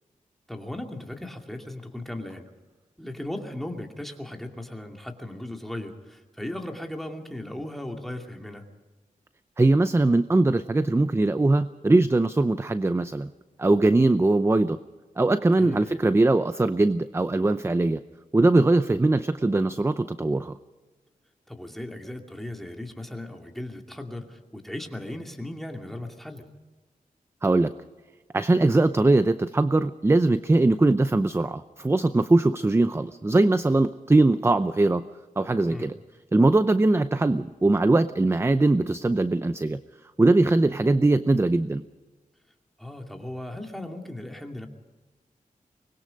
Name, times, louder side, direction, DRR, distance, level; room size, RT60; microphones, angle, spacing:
voice 1, 0.5-2.5 3.0-8.6 15.6-16.1 21.5-26.5 35.6-35.9 42.8-44.7, left 1 dB, ahead, 2 dB, 2.5 m, -37 dB
voice 2, 9.6-13.3 13.6-14.8 15.2-18.0 18.3-20.5 27.4-27.7 28.3-35.0 35.4-36.0 36.3-39.8 40.2-41.8, right 2 dB, 20° right, 12 dB, 0.6 m, -21 dB
24.5 x 20.5 x 5.3 m, 1.3 s
wide cardioid pair, 115°, 14 cm